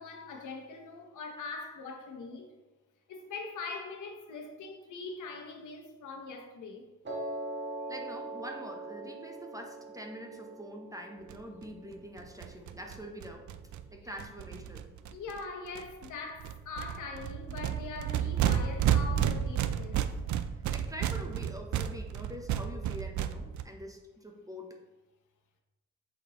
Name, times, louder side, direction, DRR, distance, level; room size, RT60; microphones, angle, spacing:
voice 1, 0.0-2.5 3.1-6.9 14.0-14.2 15.1-20.1, left 4 dB, 75° left, 1.0 m, -42 dB
Piano, 7.1-13.2, right 2 dB, 35° right, 1.8 m, -42 dB
voice 2, 7.9-13.5 13.9-14.9 20.7-24.8, equal, 10° right, 0.8 m, -45 dB
sound 1, 11.3-11.4 11.6-11.7 11.9-12.0 12.2-15.4 15.7-16.1 16.4-23.6, right 9 dB, 70° right, 0.4 m, -32 dB
7.7 x 4.4 x 3.0 m
cardioid pair, 105°, 30 cm